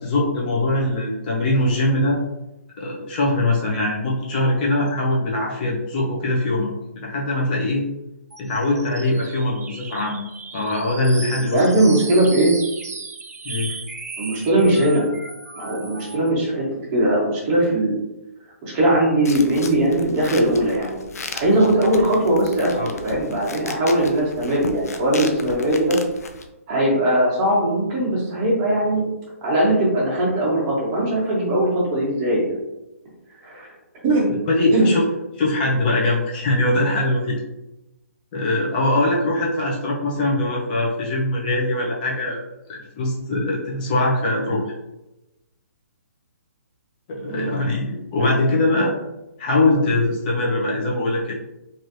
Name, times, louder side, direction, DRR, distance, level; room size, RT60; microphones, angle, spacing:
voice 1, 0.0-2.2 2.8-6.7 7.0-7.9 8.4-10.2 10.5-11.7 13.4-13.7 22.8-23.0 34.4-35.0 35.4-37.4 38.3-42.4 42.7-44.6 47.1-48.9 49.4-51.3, left 2 dB, 35° left, -3 dB, 0.7 m, -22 dB
sound 1, 8.3-16.3, right 4 dB, 90° right, 0.5 m, -36 dB
voice 2, 11.5-12.5 14.2-15.1 15.6-16.6 16.9-17.9 18.6-21.0 21.3-26.0 26.7-29.0 29.4-32.5 33.4-33.7 34.0-34.3 34.7-34.9 47.3-47.5 48.2-48.3, right 1 dB, 25° right, -5 dB, 1.1 m, -20 dB
sound 2, 19.3-26.5, left 4 dB, 80° left, 0.4 m, -36 dB
3.1 x 2.7 x 2.6 m, 0.94 s
hypercardioid pair, 150°, 8 cm